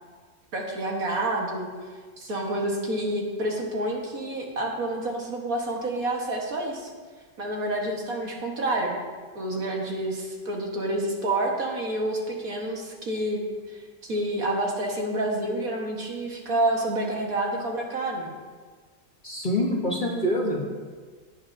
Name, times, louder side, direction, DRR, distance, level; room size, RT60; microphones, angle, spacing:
voice 1, 0.5-1.7 2.2-6.9 7.4-9.0 9.4-13.4 13.7-18.3, right 1 dB, 60° right, -1 dB, 1.9 m, -28 dB
voice 2, 19.2-20.6, left 1 dB, 30° left, -2 dB, 1.2 m, -25 dB
17.0 x 9.1 x 2.7 m, 1.5 s
omnidirectional pair, 1.8 m